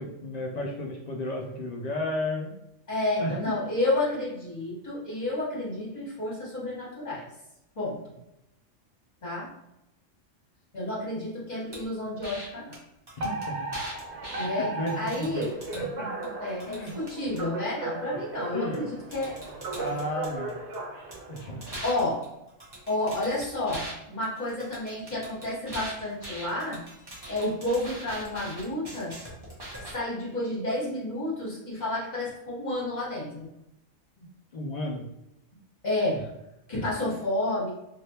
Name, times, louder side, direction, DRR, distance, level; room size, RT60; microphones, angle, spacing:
voice 1, 0.0-2.6 3.2-3.5 13.2-13.7 14.4-15.4 15.7-16.1 16.7-16.9 18.1-18.9 19.8-20.6 21.3-21.6 34.2-34.3 34.5-35.1 36.1-36.2 36.7-36.9, left 1 dB, 60° left, 0 dB, 0.4 m, -33 dB
voice 2, 2.9-7.2 7.8-8.0 9.2-9.5 10.7-12.8 14.3-14.7 14.9-15.5 16.4-19.3 19.7-19.9 21.8-22.2 22.9-26.8 27.3-29.1 29.9-33.5 35.8-36.2 36.7-37.7, left 1 dB, 35° left, -7 dB, 1.3 m, -30 dB
sound 1, 11.7-11.8 12.2-12.5 12.7-12.8 13.1-14.5 14.9-15.8 16.2-17.4 18.7-18.8 19.1-20.8 21.1-23.9 24.2-29.9, right 1 dB, 25° right, 0.8 m, -42 dB
Alarm, 13.2-21.8, right 3 dB, 65° right, 0.9 m, -36 dB
3.3 x 2.5 x 2.8 m, 0.86 s
omnidirectional pair, 1.3 m